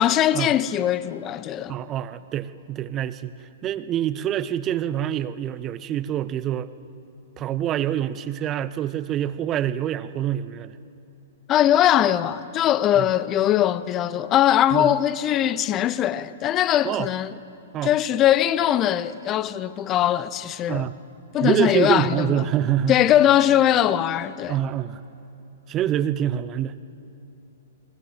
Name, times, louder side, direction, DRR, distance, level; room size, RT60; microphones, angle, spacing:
voice 1, 0.0-1.8 11.5-17.4 17.8-20.9 21.3-22.4 22.9-24.6, left 11 dB, 25° left, 0.8 m, -21 dB
voice 2, 1.7-3.3 3.6-6.7 7.4-10.7 13.0-13.1 14.7-14.9 16.8-17.1 17.7-17.9 20.7-20.9 21.4-23.0 24.5-25.0 25.7-26.7, right 11 dB, 25° right, 0.8 m, -25 dB
29.5 x 22.5 x 7.4 m
figure-of-eight pair, 110°, 0 cm